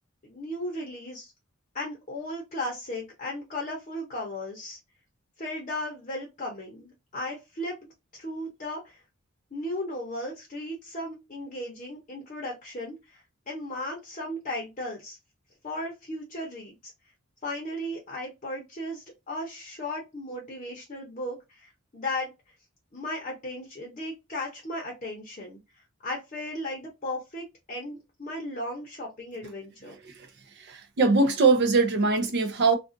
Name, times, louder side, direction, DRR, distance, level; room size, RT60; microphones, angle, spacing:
voice 1, 0.2-1.3 1.7-4.8 5.4-9.0 9.5-15.2 15.6-16.9 17.4-22.3 22.9-25.6 26.0-29.9, left 1 dB, 35° left, 0.7 m, -36 dB
voice 2, 31.0-32.8, right 3 dB, 55° right, 0.5 m, -21 dB
2.4 x 2.3 x 2.5 m
head